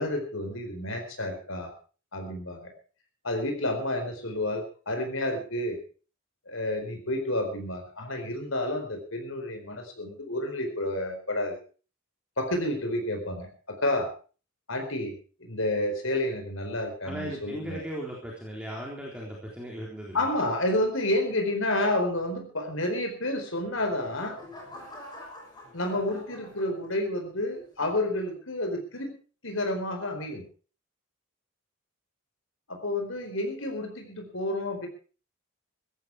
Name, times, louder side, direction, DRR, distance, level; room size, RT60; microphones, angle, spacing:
voice 1, 0.0-1.7 2.1-2.7 3.2-5.8 6.5-11.6 12.4-14.1 14.7-15.1 15.4-17.8 20.1-24.4 25.7-29.1 29.4-30.5 32.7-34.9, left 1 dB, 70° left, 5 dB, 4.6 m, -30 dB
voice 2, 17.0-20.2, equal, 5° right, -3 dB, 3.8 m, -37 dB
sound 1, 23.7-27.2 27.8-28.1, left 1 dB, 20° left, 6.6 m, -46 dB
17.0 x 13.5 x 4.8 m, 0.39 s
head